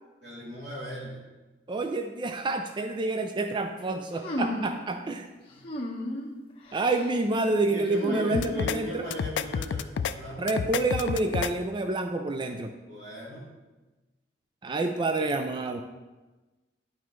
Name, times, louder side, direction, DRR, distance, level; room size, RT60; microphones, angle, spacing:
voice 1, 0.2-1.2 5.5-5.6 7.7-10.8 12.9-13.5, equal, 90° right, -5 dB, 2.6 m, -39 dB
voice 2, 1.7-5.3 6.7-9.0 10.4-12.7 14.6-15.8, right 2 dB, 25° right, 6 dB, 0.4 m, -28 dB
sound 1, 4.2-4.8 5.6-6.3 6.7-7.1 7.9-9.1, left 1 dB, 30° left, 1.3 m, -33 dB
sound 2, 8.3-8.8 9.1-10.1 10.5-11.5, left 7 dB, 80° left, 0.3 m, -29 dB
11.0 x 4.8 x 3.1 m, 1.2 s
head